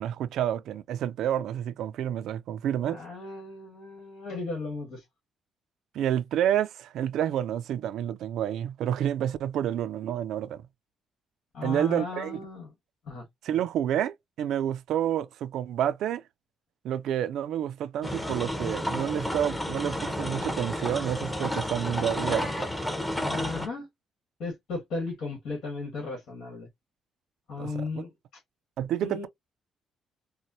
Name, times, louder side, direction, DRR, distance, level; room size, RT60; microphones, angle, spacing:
voice 1, 0.0-3.0 5.9-10.6 11.6-12.4 13.4-16.2 16.8-22.7 27.6-27.7 28.8-29.3, right 10 dB, 80° right, 0.4 m, -29 dB
voice 2, 2.8-5.0 11.5-12.7 13.0-13.3 23.1-23.9 24.4-26.7 27.5-28.4 29.0-29.3, left 3 dB, 70° left, 1.5 m, -36 dB
sound 1, 18.0-23.7, left 1 dB, 10° left, 0.9 m, -31 dB
4.1 x 2.1 x 2.6 m
cardioid pair, 90°, 0 cm